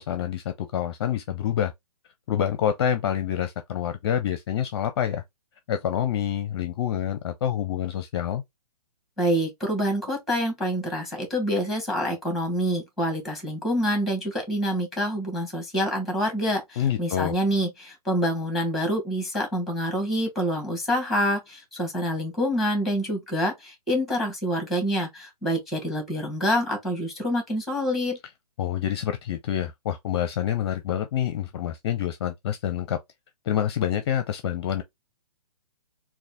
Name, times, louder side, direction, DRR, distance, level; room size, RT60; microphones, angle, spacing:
voice 1, 0.0-1.7 2.3-5.2 5.7-8.4 16.8-17.3 28.6-33.0 33.4-34.8, left 10 dB, 40° left, 0.6 m, -27 dB
voice 2, 9.2-28.2, equal, ahead, 1.9 m, -26 dB
4.0 x 2.4 x 3.6 m
hypercardioid pair, 140°, 20 cm